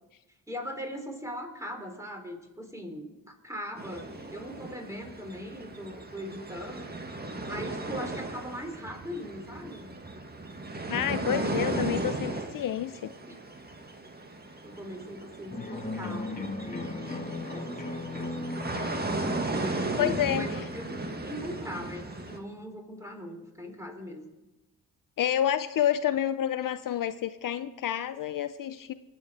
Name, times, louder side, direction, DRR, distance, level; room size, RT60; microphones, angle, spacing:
voice 1, 0.5-6.9 7.5-9.9 11.2-11.9 13.3-13.4 14.6-18.6 19.5-20.9 21.2-24.3, equal, 10° right, 3 dB, 3.5 m, -40 dB
sound 1, 3.8-22.4, right 2 dB, 25° right, 1.8 m, -36 dB
voice 2, 10.9-13.1 20.0-20.5 25.2-28.9, left 10 dB, 60° left, 12 dB, 0.6 m, -29 dB
sound 2, 15.5-22.3, left 2 dB, 25° left, 1.7 m, -38 dB
21.5 x 7.7 x 4.9 m, 1.1 s
cardioid pair, 60°, 37 cm